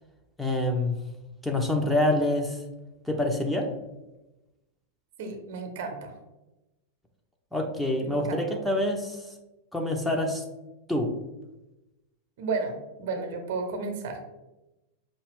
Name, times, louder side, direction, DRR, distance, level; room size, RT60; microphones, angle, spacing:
voice 1, 0.4-1.0 1.4-2.6 3.1-3.7 7.5-9.3 9.7-10.4 10.9-11.1, left 1 dB, 5° left, 2 dB, 0.5 m, -26 dB
voice 2, 5.2-6.1 8.0-8.6 12.4-14.2, right 4 dB, 55° right, 5 dB, 0.7 m, -33 dB
5.2 x 2.3 x 3.4 m, 1.0 s
figure-of-eight pair, 90°, 0 cm